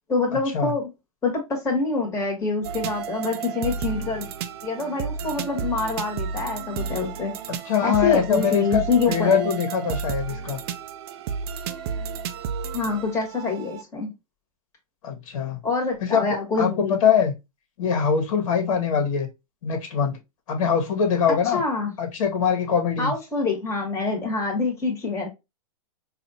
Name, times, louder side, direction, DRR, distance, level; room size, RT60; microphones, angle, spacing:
voice 1, 0.1-0.9 1.2-4.3 4.6-7.3 7.8-9.5 12.7-14.1 15.6-16.9 21.5-21.9 23.0-25.3, left 4 dB, 15° left, 1.5 m, -26 dB
sound 1, 2.6-13.8, right 6 dB, 45° right, 0.4 m, -32 dB
voice 2, 7.7-10.6 15.0-15.6 16.0-17.3 17.8-19.3 19.6-20.2 20.5-21.6 22.0-23.1, left 7 dB, 60° left, 1.4 m, -23 dB
4.0 x 2.5 x 2.7 m
hypercardioid pair, 140°, 18 cm